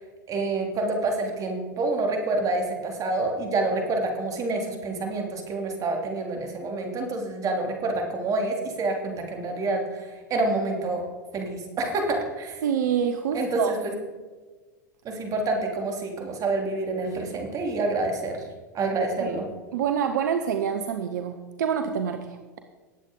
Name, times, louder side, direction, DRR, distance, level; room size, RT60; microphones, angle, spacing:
voice 1, 0.3-9.8 10.3-11.0 11.3-12.5 13.3-13.6 15.0-18.4 18.7-19.5, right 2 dB, 35° right, 2 dB, 3.2 m, -27 dB
voice 2, 12.6-13.7 19.2-19.4 19.7-22.6, right 8 dB, 70° right, 7 dB, 0.9 m, -27 dB
19.5 x 8.3 x 3.9 m, 1.3 s
hypercardioid pair, 95°, 10 cm